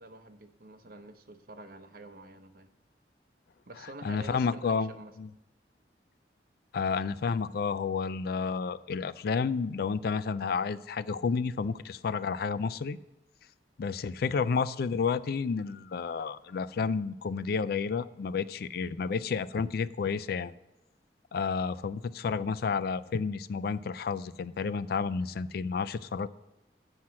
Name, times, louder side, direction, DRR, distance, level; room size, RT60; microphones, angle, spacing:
voice 1, 0.0-2.7 3.7-5.1 25.0-25.2, right 2 dB, 55° right, 8 dB, 0.8 m, -48 dB
voice 2, 4.0-4.9 5.2-5.3 6.7-13.0 13.8-20.5 21.3-26.3, left 5 dB, 60° left, 16 dB, 0.4 m, -31 dB
7.9 x 5.8 x 7.4 m, 0.99 s
head